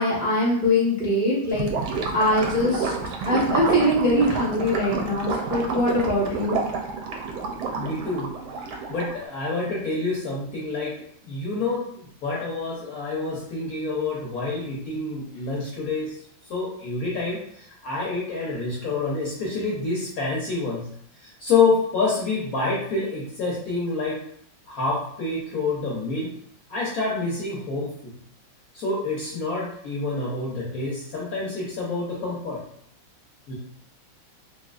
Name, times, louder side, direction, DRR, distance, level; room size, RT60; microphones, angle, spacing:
voice 1, 0.0-1.7 2.1-2.9 3.2-6.5, left 1 dB, 10° right, -7 dB, 0.4 m, -22 dB
Gurgling / Liquid, 1.5-9.2, right 4 dB, 80° right, 1.3 m, -29 dB
voice 2, 7.8-8.3 8.9-10.9 11.2-16.2 16.5-20.8 21.2-24.2 24.7-26.3 26.7-28.1 28.7-32.6 33.5-33.6, left 3 dB, 60° left, -5 dB, 0.9 m, -27 dB
3.3 x 2.7 x 2.3 m, 0.68 s
omnidirectional pair, 2.2 m